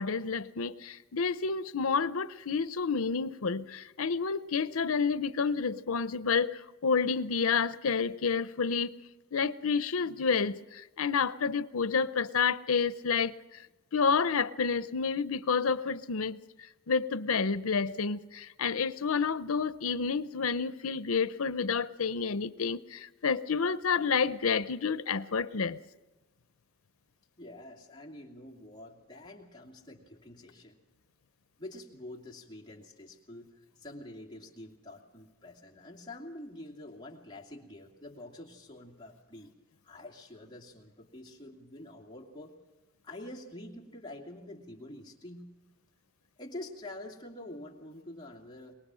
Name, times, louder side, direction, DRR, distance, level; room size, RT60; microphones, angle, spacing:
voice 1, 0.0-8.9 9.3-13.4 13.9-16.4 16.9-25.8, left 5 dB, 90° left, 0.7 m, -29 dB
voice 2, 27.4-30.8 31.6-39.5 39.8-42.6 43.0-45.5 46.4-48.7, left 1 dB, 20° left, 2.5 m, -47 dB
22.5 x 20.5 x 6.3 m
head